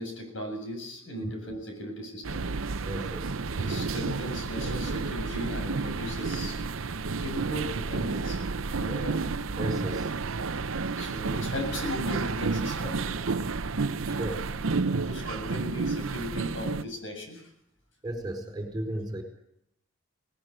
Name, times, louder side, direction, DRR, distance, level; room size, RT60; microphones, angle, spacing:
voice 1, 0.0-2.4 3.5-6.6 7.2-8.5 8.7-9.1 10.9-13.0 14.0-14.2 15.1-17.4, equal, 70° left, 4 dB, 7.7 m, -37 dB
sound 1, 2.2-16.8, right 4 dB, 90° right, 0.7 m, -31 dB
voice 2, 2.8-3.3 8.9-9.0 9.6-10.1 14.1-14.4 18.0-19.2, right 1 dB, 20° right, 5 dB, 4.6 m, -34 dB
20.0 x 19.5 x 7.9 m, 0.74 s
head